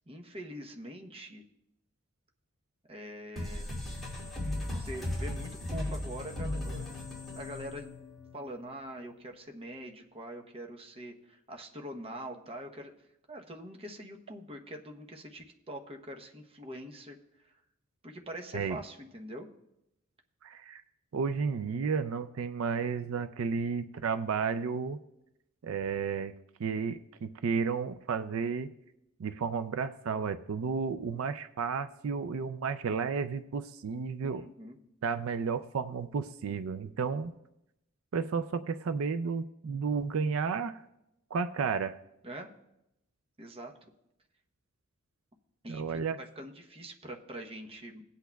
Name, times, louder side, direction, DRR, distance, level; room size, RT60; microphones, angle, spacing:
voice 1, 0.1-1.4 2.9-3.7 4.8-7.0 7.3-7.9 8.3-12.9 13.3-17.2 17.4-17.6 18.0-19.5 34.2-34.8 42.2-42.5 43.4-43.7 45.6-48.0, equal, 30° right, 3 dB, 0.9 m, -44 dB
sound 1, 3.4-8.7, left 1 dB, ahead, 2.5 m, -37 dB
voice 2, 20.4-20.8 21.1-25.0 25.6-26.3 26.6-28.7 29.2-34.4 35.0-37.3 38.1-40.8 41.3-42.0 45.7-46.2, right 5 dB, 85° right, 11 dB, 0.4 m, -32 dB
18.0 x 8.2 x 2.3 m, 0.86 s
head